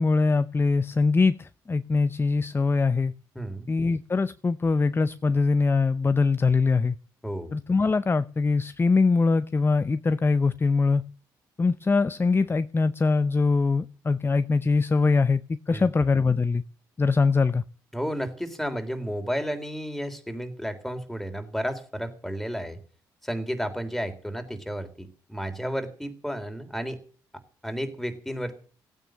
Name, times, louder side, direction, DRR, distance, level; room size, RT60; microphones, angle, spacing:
voice 1, 0.0-3.1 3.7-6.9 7.5-11.0 11.6-15.4 15.7-16.6 17.0-17.6, left 4 dB, 25° left, 0.6 m, -22 dB
voice 2, 3.4-3.7 7.2-7.5 15.7-15.9 17.9-22.8 23.2-27.0 27.6-28.6, equal, ahead, 3.6 m, -32 dB
16.0 x 9.3 x 7.6 m
supercardioid pair, 55°, 9 cm